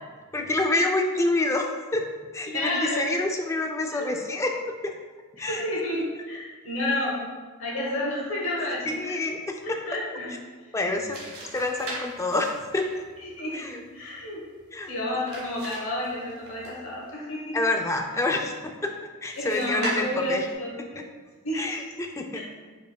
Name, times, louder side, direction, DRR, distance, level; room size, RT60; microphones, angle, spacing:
voice 1, 0.3-1.7 1.9-2.0 2.3-4.5 4.8-4.9 5.4-5.6 8.9-9.4 10.7-11.2 11.5-13.0 13.5-13.8 14.7-14.9 17.5-18.9 19.2-20.4 21.0-21.1 21.5-22.4, left 2 dB, 15° left, 3 dB, 0.3 m, -27 dB
voice 2, 2.5-3.1 4.0-4.1 5.5-7.2 7.6-9.1 9.6-10.3 10.9-11.0 13.2-14.4 14.9-17.6 19.4-21.0 21.4-21.8 22.3-22.4, left 1 dB, 65° left, -4 dB, 1.2 m, -30 dB
sound 1, 10.8-17.1 19.3-20.5, right 2 dB, 75° right, 1.4 m, -40 dB
5.0 x 4.5 x 2.3 m, 1.4 s
head